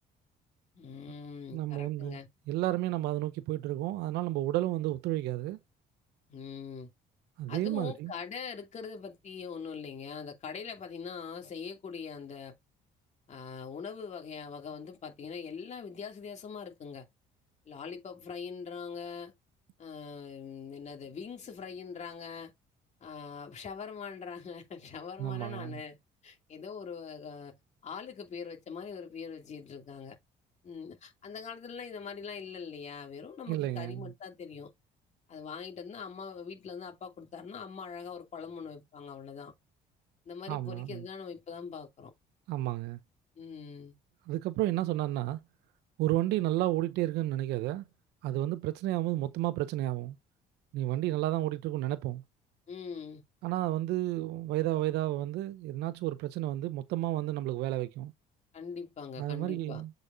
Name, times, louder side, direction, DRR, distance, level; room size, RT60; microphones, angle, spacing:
voice 1, 0.7-2.3 6.3-6.9 7.5-12.5 13.3-17.1 17.7-19.3 19.8-22.5 23.0-26.0 26.2-27.5 27.8-30.2 30.6-34.7 35.3-39.5 40.3-42.1 43.4-44.0 52.7-53.2 58.5-59.8, left 6 dB, 45° left, 2.7 m, -42 dB
voice 2, 1.5-2.2 2.5-5.6 7.4-8.1 25.2-25.8 33.5-34.1 40.5-41.0 42.5-43.0 44.3-45.4 46.0-47.8 48.2-50.2 50.7-52.2 53.4-58.1 59.2-59.9, right 15 dB, 85° right, 0.7 m, -31 dB
7.8 x 5.1 x 2.7 m
cardioid pair, 110°, 17 cm